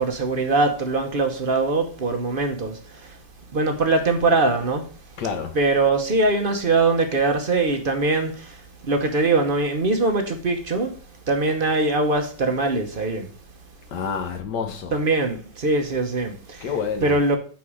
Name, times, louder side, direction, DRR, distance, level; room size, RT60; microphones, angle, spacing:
voice 1, 0.0-3.2 3.5-4.8 5.5-10.9 11.3-13.3 14.9-16.7 17.0-17.4, right 3 dB, 40° right, 0.8 m, -22 dB
voice 2, 5.2-5.6 13.9-15.0 16.6-17.2, left 6 dB, 65° left, 1.6 m, -28 dB
9.1 x 4.2 x 4.9 m
omnidirectional pair, 2.1 m